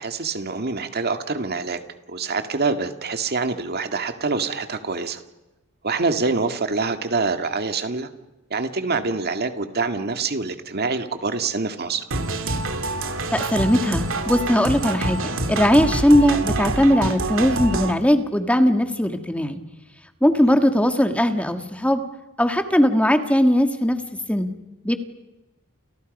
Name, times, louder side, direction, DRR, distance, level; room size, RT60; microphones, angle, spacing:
voice 1, 0.0-1.8 2.1-5.2 5.8-8.1 8.5-12.0 20.5-20.6, right 4 dB, 50° right, 8 dB, 2.1 m, -25 dB
sound 1, 12.1-17.9, right 2 dB, 65° right, 2.6 m, -26 dB
voice 2, 13.3-19.6 20.2-22.0 22.4-24.0 24.3-24.5 24.8-25.0, equal, 5° left, 7 dB, 1.8 m, -19 dB
30.0 x 29.5 x 5.4 m, 1.0 s
head